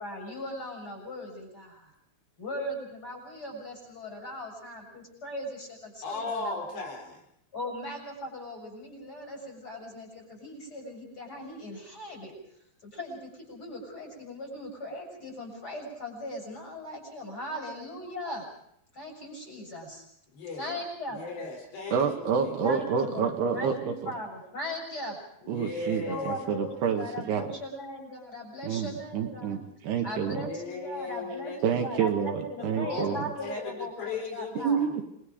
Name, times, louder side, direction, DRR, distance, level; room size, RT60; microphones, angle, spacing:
voice 1, 0.0-1.9 2.4-6.5 7.5-12.3 12.8-18.4 18.9-20.0 20.6-21.2 22.6-25.2 26.1-26.7 26.9-29.6 30.0-31.5 31.8-34.8, left 1 dB, 20° left, 1 dB, 6.9 m, -39 dB
voice 2, 6.0-7.2 20.3-20.8 21.1-22.3 25.4-27.1 30.4-32.0 32.6-34.9, left 3 dB, 70° left, 1 dB, 6.6 m, -37 dB
voice 3, 21.9-24.1 25.5-27.5 28.6-30.5 31.6-33.2 34.6-35.0, right 6 dB, 70° right, 4 dB, 3.5 m, -28 dB
28.0 x 22.5 x 5.1 m, 0.73 s
omnidirectional pair, 5.1 m